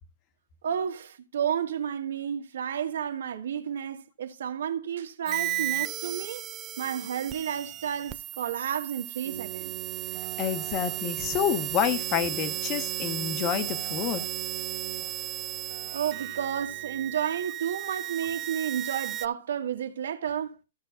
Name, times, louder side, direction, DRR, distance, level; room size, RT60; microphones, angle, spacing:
voice 1, 0.6-6.4 6.8-9.7 15.9-20.5, right 9 dB, 75° right, 1.7 m, -31 dB
sound 1, 5.3-19.3, right 13 dB, 20° right, 0.4 m, -35 dB
Keyboard (musical), 9.2-17.4, right 15 dB, 60° right, 1.9 m, -41 dB
voice 2, 10.4-14.2, left 10 dB, 25° left, 1.2 m, -28 dB
15.5 x 6.4 x 2.6 m
hypercardioid pair, 170°, 0 cm